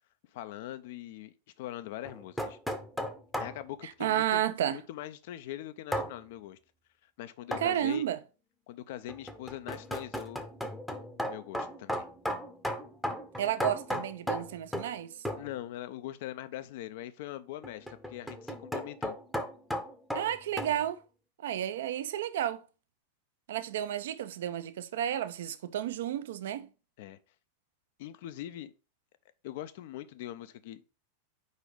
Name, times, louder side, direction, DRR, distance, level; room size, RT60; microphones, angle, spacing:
voice 1, 0.3-2.6 3.4-4.4 4.7-6.6 7.2-8.0 8.7-10.4 11.3-12.1 15.4-19.2 27.0-27.2 28.0-28.7 29.4-30.8, left 13 dB, 50° left, 0.5 m, -42 dB
sound 1, 2.0-3.6 5.9-6.1 7.5-7.8 9.1-15.0 15.3-15.5 17.6-20.8, equal, ahead, 0.7 m, -35 dB
voice 2, 4.0-4.8 7.6-8.2 13.4-15.1 20.1-21.0 21.4-22.6 23.5-26.7, right 11 dB, 60° right, 0.5 m, -31 dB
4.9 x 4.0 x 4.9 m
figure-of-eight pair, 90°, 0 cm